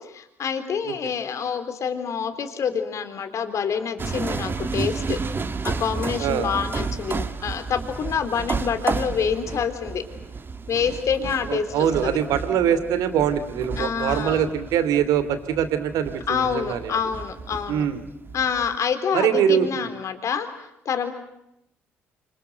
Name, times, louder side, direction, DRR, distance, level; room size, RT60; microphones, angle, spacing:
voice 1, 0.0-5.2 5.6-10.0 10.7-12.1 13.8-14.5 16.3-17.8 18.3-20.5 20.9-21.1, left 7 dB, 55° left, 8 dB, 3.6 m, -27 dB
sound 1, 4.0-18.8, right 4 dB, 35° right, 2.4 m, -32 dB
voice 2, 11.5-17.0 17.7-18.0 19.1-19.9, right 9 dB, 65° right, 12 dB, 2.8 m, -23 dB
27.5 x 27.0 x 7.9 m, 0.81 s
hypercardioid pair, 50°, 6 cm